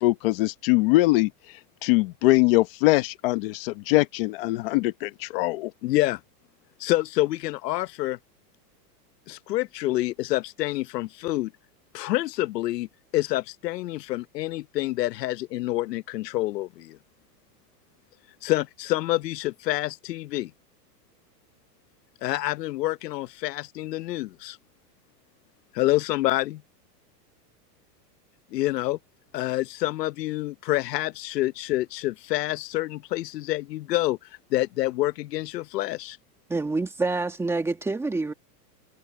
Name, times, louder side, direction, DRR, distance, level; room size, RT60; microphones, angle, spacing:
voice 1, 0.0-5.7, left 20 dB, 35° left, 1.0 m, -22 dB
voice 2, 5.8-6.2 6.8-8.2 9.3-11.5 11.9-12.9 13.1-17.0 18.4-20.5 22.2-24.6 25.7-26.6 28.5-29.0 29.3-34.2 34.5-36.2, left 16 dB, 80° left, 0.9 m, -27 dB
voice 3, 36.5-38.3, right 3 dB, 5° right, 1.6 m, -27 dB
supercardioid pair, 170°, 48 cm